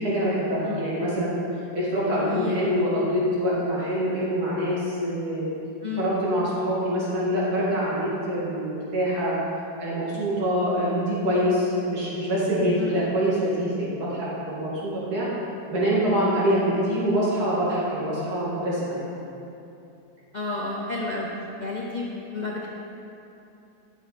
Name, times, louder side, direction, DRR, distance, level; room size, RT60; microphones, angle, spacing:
voice 1, 0.0-1.4 1.7-5.5 6.0-9.4 9.8-15.3 15.7-19.1, equal, 55° right, -7 dB, 2.7 m, -25 dB
voice 2, 2.1-2.6 5.8-6.1 12.8-13.0 20.3-21.3 21.6-22.7, left 3 dB, 85° left, -4 dB, 0.4 m, -31 dB
11.0 x 6.6 x 4.3 m, 2.8 s
omnidirectional pair, 2.0 m